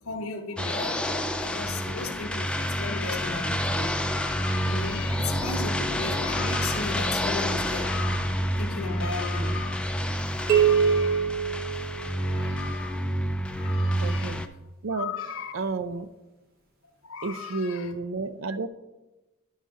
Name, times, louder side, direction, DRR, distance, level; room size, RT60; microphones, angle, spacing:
voice 1, 0.0-11.3 12.1-13.0 13.5-14.4 14.9-15.6 17.0-17.9, left 4 dB, 80° left, 0.9 m, -36 dB
sound 1, 0.6-14.5, equal, 5° left, 0.3 m, -28 dB
sound 2, 10.5-12.4, right 7 dB, 45° right, 0.9 m, -23 dB
voice 2, 14.0-14.4 14.8-15.1 15.5-16.1 17.2-18.7, right 3 dB, 65° right, 0.5 m, -31 dB
11.0 x 5.5 x 3.7 m
head